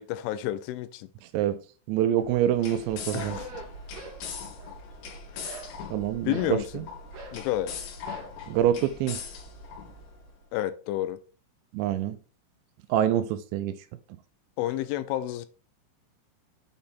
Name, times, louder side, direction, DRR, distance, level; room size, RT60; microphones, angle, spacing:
voice 1, 0.0-1.1 3.1-3.5 5.3-5.6 6.3-6.7 7.3-7.7 10.5-11.2 14.6-15.5, left 13 dB, 90° left, 3.1 m, -30 dB
voice 2, 1.2-1.6 1.9-3.4 5.9-6.8 8.5-9.2 11.7-12.2 12.9-13.8, right 11 dB, 85° right, 2.7 m, -26 dB
sound 1, 2.2-10.3, left 5 dB, 75° left, 3.7 m, -41 dB
sound 2, 3.1-4.2 4.5-5.0 5.4-6.6 7.1-7.4 8.0-8.4, right 4 dB, 65° right, 1.7 m, -43 dB
8.6 x 4.1 x 3.6 m
omnidirectional pair, 5.5 m